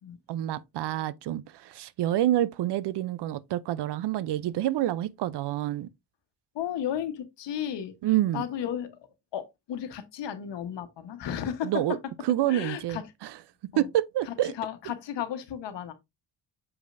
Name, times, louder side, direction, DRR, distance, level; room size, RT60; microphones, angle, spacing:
voice 1, 0.3-5.9 8.0-8.4 11.6-12.0 12.2-13.3 13.8-14.5, right 13 dB, 60° right, 0.6 m, -28 dB
voice 2, 6.5-7.9 8.3-9.0 9.3-11.7 12.5-13.0 13.7-13.9 14.3-15.9, left 10 dB, 65° left, 1.3 m, -34 dB
7.2 x 5.1 x 2.6 m
cardioid pair, 90°, 45 cm